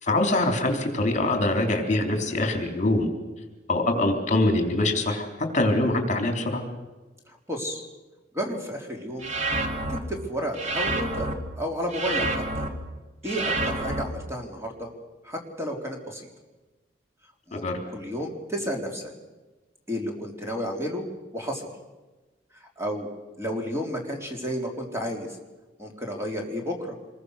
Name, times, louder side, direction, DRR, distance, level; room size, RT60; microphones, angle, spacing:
voice 1, 0.0-3.1 3.7-5.3 5.5-6.6 17.5-17.8, left 2 dB, 40° left, 4 dB, 3.7 m, -24 dB
voice 2, 7.3-7.8 8.3-9.3 9.9-11.3 11.6-12.7 13.2-14.9 15.2-16.3 17.5-17.6 17.9-19.1 19.9-21.0 21.3-21.7 22.6-23.1 23.4-25.3 25.8-27.0, equal, 15° right, 1 dB, 3.8 m, -31 dB
sound 1, 9.2-10.0 10.6-11.3 11.9-12.7 13.3-14.0, right 2 dB, 40° right, 2.6 m, -28 dB
26.5 x 22.0 x 6.7 m, 1.2 s
head